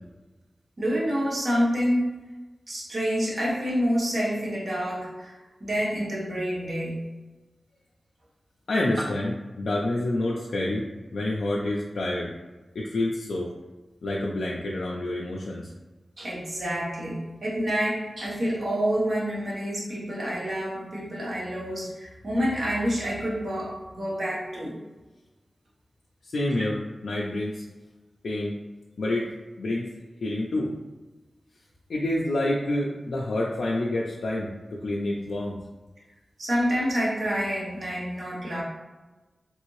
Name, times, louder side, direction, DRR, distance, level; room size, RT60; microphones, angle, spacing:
voice 1, 0.8-2.2 2.7-7.1 16.2-24.7 36.4-38.6, equal, 65° right, -5 dB, 1.1 m, -28 dB
voice 2, 8.7-10.8 11.1-12.3 12.7-13.5 14.0-15.7 26.2-26.8 27.0-27.6 28.2-28.5 29.0-29.3 29.6-29.9 30.2-30.7 31.9-34.5 34.8-35.5, left 1 dB, 90° left, -4 dB, 0.4 m, -28 dB
3.2 x 2.7 x 3.0 m, 1.2 s
wide cardioid pair, 65°, 0 cm